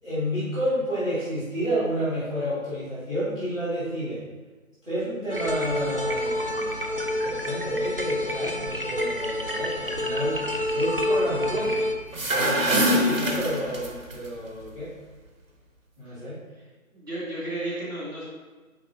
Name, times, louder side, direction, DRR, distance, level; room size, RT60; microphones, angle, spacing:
voice 1, 0.0-4.2 4.8-11.7 12.1-14.9 16.0-16.4, equal, 5° left, -25 dB, 1.4 m, -30 dB
sound 1, 5.3-11.9, left 1 dB, 40° right, 0.6 m, -28 dB
sound 2, 12.0-14.1, equal, 65° right, 1.2 m, -24 dB
voice 2, 12.8-13.4 16.6-16.7 16.9-18.2, right 2 dB, 15° right, -13 dB, 1.8 m, -33 dB
9.4 x 4.0 x 2.8 m, 1.3 s
figure-of-eight pair, 160°, 43 cm